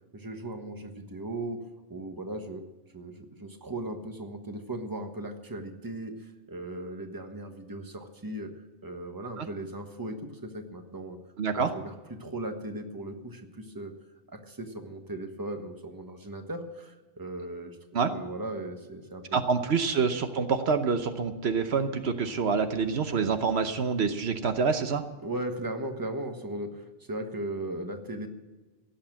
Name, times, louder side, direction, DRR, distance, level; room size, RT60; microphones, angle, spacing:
voice 1, 0.1-1.6 1.9-2.6 2.9-8.5 8.8-11.2 11.5-13.9 14.3-17.8 18.1-19.4 25.2-28.3, right 1 dB, 20° right, 5 dB, 1.3 m, -37 dB
voice 2, 11.4-11.7 17.9-18.1 19.3-25.0, right 5 dB, 75° right, 8 dB, 1.2 m, -27 dB
17.0 x 7.2 x 8.8 m, 1.2 s
omnidirectional pair, 1.1 m